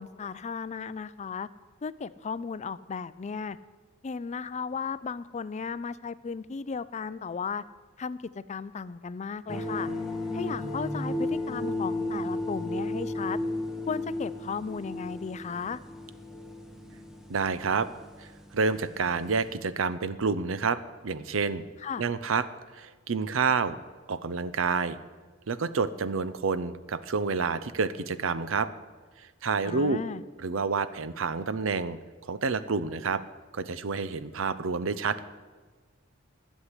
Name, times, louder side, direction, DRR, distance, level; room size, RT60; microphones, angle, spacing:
voice 1, 0.0-1.5 1.8-3.6 4.0-7.6 8.0-8.2 8.5-9.9 10.3-13.4 13.9-15.8 21.8-22.0 29.6-30.2, left 5 dB, 35° left, 16 dB, 0.4 m, -35 dB
sound 1, 9.5-19.5, left 1 dB, ahead, 1.2 m, -34 dB
voice 2, 17.3-17.9 18.2-20.8 21.0-21.6 22.0-22.4 22.7-23.8 24.1-25.0 25.5-28.7 29.4-30.0 30.4-32.0 32.3-33.2 33.5-35.2, right 4 dB, 70° right, 14 dB, 0.7 m, -28 dB
13.0 x 6.4 x 9.8 m, 1.4 s
head